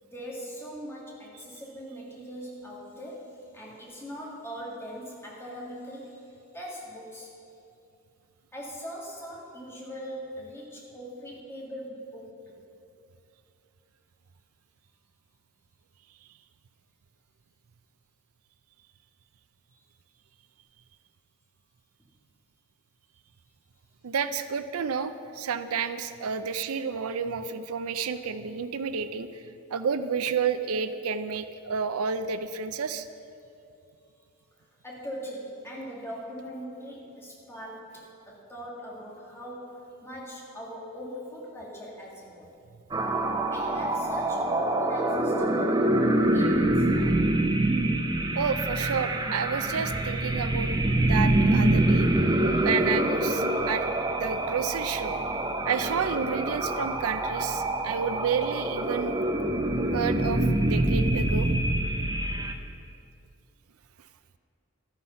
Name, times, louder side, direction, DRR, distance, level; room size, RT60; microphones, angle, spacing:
voice 1, 0.0-6.3 6.5-7.4 8.5-12.6 34.8-42.5 43.4-47.2, equal, 10° left, -4 dB, 2.0 m, -41 dB
voice 2, 24.0-29.4 29.7-33.1 48.4-50.7 51.0-52.1 52.6-53.8 54.2-55.2 55.6-59.1 59.9-61.5, right 6 dB, 80° right, 11 dB, 0.5 m, -30 dB
sound 1, 42.9-62.5, right 1 dB, 20° right, 0.5 m, -25 dB
12.0 x 9.7 x 5.7 m, 2.6 s
head